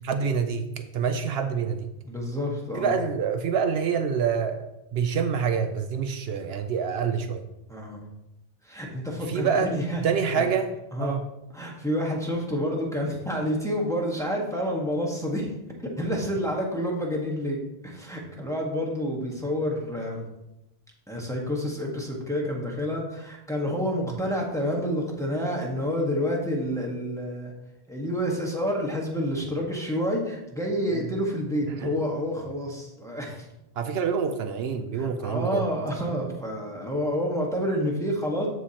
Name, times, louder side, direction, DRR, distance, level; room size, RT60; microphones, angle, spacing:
voice 1, 0.0-1.9 2.7-7.4 9.3-9.7 10.0-10.7 11.0-11.3 30.9-31.1 31.7-31.9 33.8-35.7, right 6 dB, 75° right, 8 dB, 0.8 m, -26 dB
voice 2, 2.0-3.0 7.0-7.1 7.7-8.0 8.6-10.1 10.4-10.5 10.9-11.2 11.5-15.5 16.0-17.6 17.8-20.3 21.1-27.5 27.9-33.5 34.9-38.5, equal, 5° left, -2 dB, 1.3 m, -29 dB
14.0 x 4.8 x 2.9 m, 0.91 s
omnidirectional pair, 1.1 m